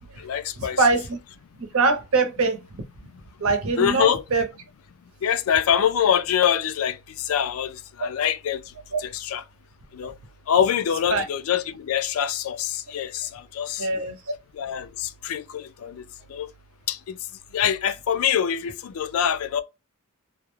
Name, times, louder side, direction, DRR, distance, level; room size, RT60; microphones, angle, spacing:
voice 1, 0.2-0.8 3.1-3.2 3.8-4.2 5.2-8.7 9.0-9.4 9.9-10.2 10.5-13.9 14.5-16.5 16.9-19.6, left 9 dB, 80° left, 0.3 m, -25 dB
voice 2, 0.8-1.2 1.7-2.6 3.4-4.5 8.0-8.1 8.9-9.0 11.1-11.2 13.8-14.2, right 3 dB, 75° right, 0.7 m, -22 dB
2.4 x 2.1 x 3.0 m
head